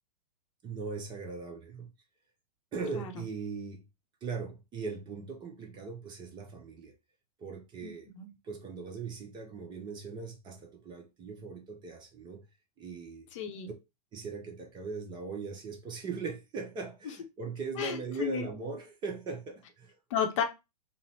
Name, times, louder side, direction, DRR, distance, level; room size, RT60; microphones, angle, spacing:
voice 1, 0.6-1.9 2.7-3.8 4.2-6.9 7.4-8.1 8.4-12.4 12.8-13.3 14.1-20.0, right 4 dB, 20° right, 0.7 m, -39 dB
voice 2, 7.8-8.3 13.3-13.7 17.8-18.5 20.1-20.4, left 8 dB, 50° left, 0.7 m, -33 dB
4.0 x 2.0 x 2.7 m
hypercardioid pair, 115°, 21 cm